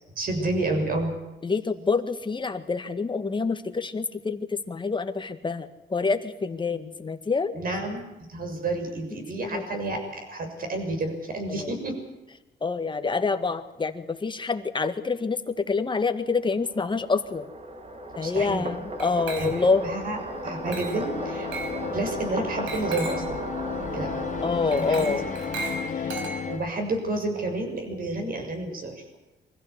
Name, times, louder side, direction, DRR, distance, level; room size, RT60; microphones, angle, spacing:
voice 1, 0.1-1.2 7.5-12.0 18.2-18.7 19.4-19.5 19.8-20.2 20.4-21.5 21.9-23.4 23.7-24.3 24.7-25.2 25.6-26.1 26.4-29.2, right 2 dB, 50° right, 5 dB, 6.7 m, -30 dB
voice 2, 1.4-7.5 9.3-9.7 11.5-11.7 12.6-17.5 18.2-19.9 24.4-25.2, left 4 dB, 25° left, 8 dB, 1.9 m, -27 dB
sound 1, 16.2-26.9, right 1 dB, 30° right, 2.8 m, -36 dB
Glass, 19.0-19.8 20.7-21.1 21.5-21.8 22.7-23.3 24.7-26.7, right 3 dB, 85° right, 5.6 m, -36 dB
sound 2, 20.3-26.6, left 7 dB, 40° left, 1.3 m, -34 dB
24.5 x 15.5 x 8.3 m, 1.1 s
cardioid pair, 100°, 19 cm